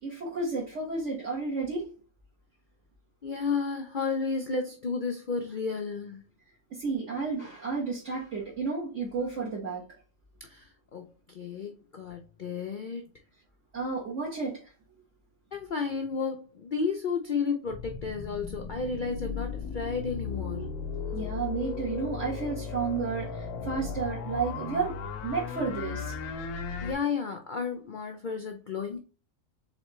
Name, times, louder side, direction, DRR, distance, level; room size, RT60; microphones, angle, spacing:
voice 1, 0.0-1.9 6.7-9.8 13.7-14.6 21.1-24.9 25.2-26.1, right 4 dB, 55° right, 1.6 m, -32 dB
voice 2, 3.2-6.2 10.4-13.1 15.5-20.7 26.8-29.0, left 5 dB, 60° left, 0.5 m, -32 dB
sound 1, 17.7-26.9, left 5 dB, 85° left, 1.2 m, -36 dB
4.1 x 3.6 x 3.0 m
omnidirectional pair, 1.5 m